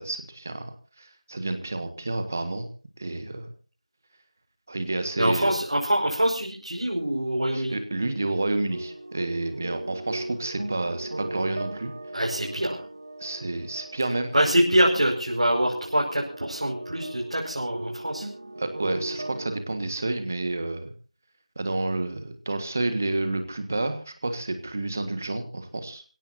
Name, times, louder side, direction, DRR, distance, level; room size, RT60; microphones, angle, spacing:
voice 1, 0.0-2.7 3.0-3.5 4.7-5.6 7.5-11.9 13.2-14.3 18.6-20.9 21.5-26.0, right 2 dB, 20° right, 9 dB, 1.6 m, -30 dB
voice 2, 5.2-7.8 12.1-12.8 14.3-18.3, right 1 dB, 60° right, -3 dB, 5.2 m, -24 dB
sound 1, 8.7-19.6, right 1 dB, 35° right, 1.1 m, -38 dB
26.0 x 17.0 x 2.7 m, 0.38 s
figure-of-eight pair, 175°, 4 cm